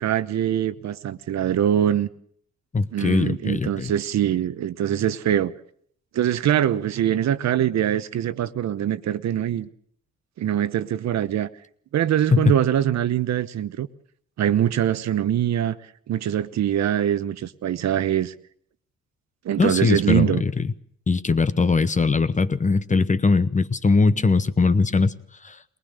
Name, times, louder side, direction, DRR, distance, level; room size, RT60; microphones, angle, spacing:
voice 1, 0.0-2.1 2.9-5.5 6.1-9.7 10.4-11.5 11.9-13.9 14.4-15.8 16.1-18.3 19.4-20.4, right 10 dB, 65° right, 1.0 m, -23 dB
voice 2, 2.7-3.9 12.3-12.5 19.6-20.7 21.1-25.1 25.4-25.6, left 4 dB, 25° left, 0.9 m, -20 dB
21.0 x 19.5 x 6.6 m
cardioid pair, 90°, 30 cm